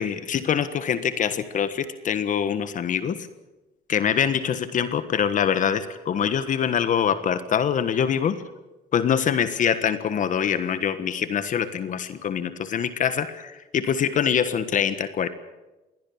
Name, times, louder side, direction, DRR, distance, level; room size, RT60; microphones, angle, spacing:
voice 1, 0.0-3.3 3.9-8.4 8.9-15.3, left 8 dB, 50° left, 12 dB, 1.4 m, -24 dB
22.0 x 17.0 x 8.8 m, 1.1 s
cardioid pair, 110°, 17 cm